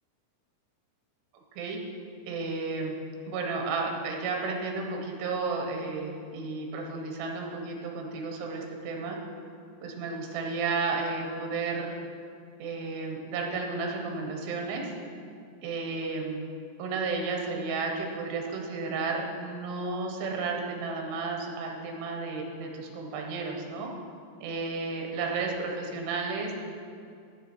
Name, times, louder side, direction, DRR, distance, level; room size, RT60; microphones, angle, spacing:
voice 1, 2.3-3.0 3.3-9.2 9.8-12.0 12.6-14.9 15.6-16.5 16.8-23.9 24.4-26.6, right 4 dB, 80° right, 1 dB, 3.3 m, -32 dB
11.5 x 6.9 x 6.2 m, 2.4 s
omnidirectional pair, 4.8 m